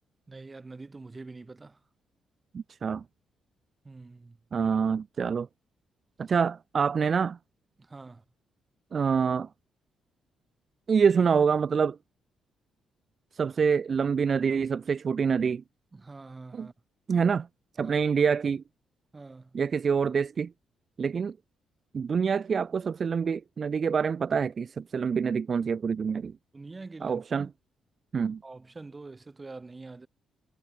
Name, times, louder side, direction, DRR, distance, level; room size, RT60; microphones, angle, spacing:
voice 1, 0.3-1.8 3.8-4.4 7.8-8.2 15.9-16.7 17.8-18.0 19.1-19.6 26.5-27.5 28.4-30.1, right 3 dB, 20° right, 5.5 m, -45 dB
voice 2, 2.5-3.0 4.5-5.5 6.2-7.4 8.9-9.5 10.9-12.0 13.3-15.6 16.5-16.7 17.1-17.5 17.8-18.6 19.5-20.5 21.0-21.4 21.9-26.3 27.0-27.5 28.1-28.4, right 6 dB, 40° right, 0.5 m, -26 dB
cardioid pair, 135°, 0 cm